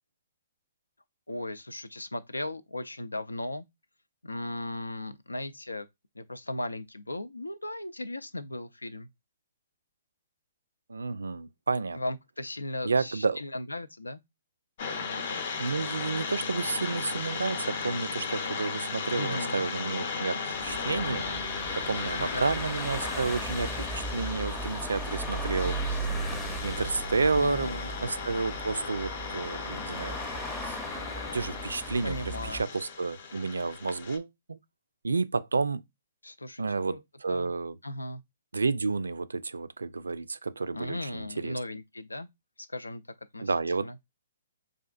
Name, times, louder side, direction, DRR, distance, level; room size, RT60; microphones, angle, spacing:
voice 1, 1.3-3.6 4.2-5.9 6.1-9.1 11.9-14.2 19.1-19.7 22.1-22.5 27.4-27.9 32.0-32.7 36.2-37.0 37.3-37.5 37.8-38.2 40.7-42.3 42.7-43.0 43.3-43.5 43.8-44.0, left 1 dB, 90° left, 0.4 m, -37 dB
voice 2, 10.9-12.0 12.8-13.4 15.6-21.3 21.8-25.8 26.6-27.7 28.0-30.2 30.6-30.8 31.3-32.2 32.4-34.6 35.0-35.8 36.6-37.8 38.5-41.6 43.4-43.9, right 4 dB, 80° right, 0.3 m, -30 dB
sound 1, 14.8-34.2, left 5 dB, 50° left, 0.7 m, -36 dB
sound 2, 20.5-32.6, right 2 dB, ahead, 0.6 m, -37 dB
4.9 x 2.5 x 2.4 m
figure-of-eight pair, 125°, 0 cm